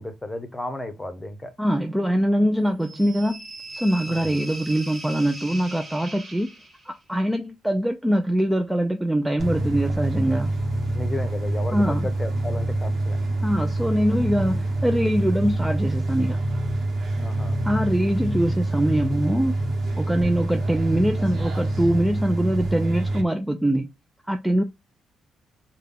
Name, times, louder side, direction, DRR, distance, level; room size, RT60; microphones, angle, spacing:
voice 1, 0.0-1.5 4.1-4.4 10.9-13.2 17.2-17.6, left 2 dB, 15° left, 0.9 m, -33 dB
voice 2, 1.6-3.4 3.7-6.5 6.9-10.5 11.7-12.1 13.4-16.4 17.6-19.6 20.0-23.9 24.3-24.6, right 1 dB, 5° right, 0.4 m, -23 dB
sound 1, 2.8-7.0, right 1 dB, 30° right, 1.8 m, -39 dB
sound 2, 9.4-23.2, right 1 dB, 55° right, 1.0 m, -26 dB
3.5 x 2.2 x 3.6 m
cardioid pair, 90°, 0 cm